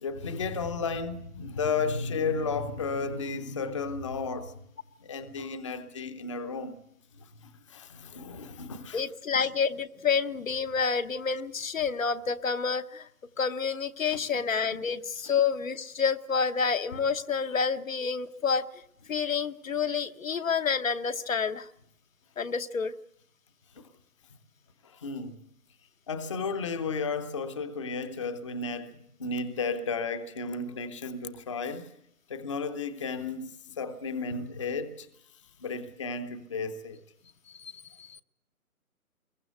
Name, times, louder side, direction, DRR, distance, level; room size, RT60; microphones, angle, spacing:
voice 1, 0.0-4.5 5.0-6.7 7.4-9.0 9.3-9.5 14.1-14.2 14.7-14.8 24.8-25.3 26.1-31.9 32.3-33.5 33.8-35.1 35.6-37.0, left 4 dB, 20° left, 0.8 m, -33 dB
voice 2, 8.9-13.1 13.4-18.7 19.1-21.7 22.4-22.9 37.5-37.7 38.0-38.2, left 5 dB, 65° left, 1.1 m, -29 dB
22.0 x 18.0 x 8.0 m
figure-of-eight pair, 155°, 44 cm